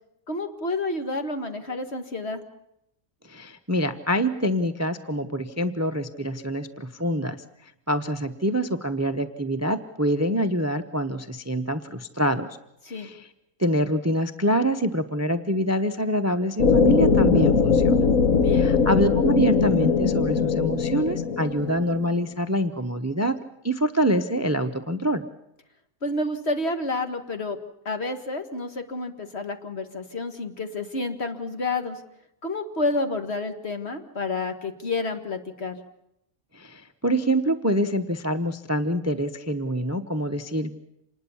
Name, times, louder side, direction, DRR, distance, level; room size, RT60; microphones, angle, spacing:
voice 1, 0.3-2.4 12.8-13.1 18.3-18.7 26.0-27.6 27.9-32.0 32.4-35.8, left 2 dB, 45° left, 7 dB, 2.1 m, -29 dB
voice 2, 3.3-12.5 12.9-13.3 13.6-18.0 18.5-23.4 23.6-25.2 36.5-40.7, equal, 15° right, 10 dB, 0.8 m, -25 dB
sound 1, 16.6-22.1, left 5 dB, 65° left, 1.6 m, -20 dB
27.0 x 20.0 x 7.2 m, 0.80 s
omnidirectional pair, 1.5 m